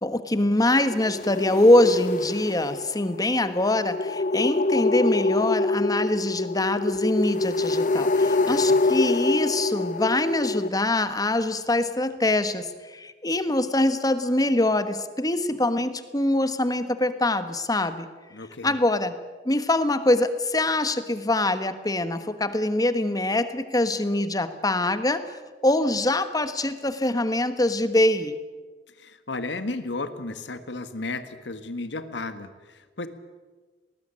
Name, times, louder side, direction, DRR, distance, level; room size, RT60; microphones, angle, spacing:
voice 1, 0.0-18.1 18.6-19.1 19.4-25.4 25.6-28.4, left 1 dB, 20° left, 11 dB, 1.4 m, -24 dB
sound 1, 0.8-10.7, left 2 dB, 45° left, 0.7 m, -25 dB
voice 2, 18.3-18.7 29.0-33.1, left 2 dB, 80° left, 10 dB, 1.6 m, -34 dB
20.0 x 19.5 x 9.9 m, 1.4 s
head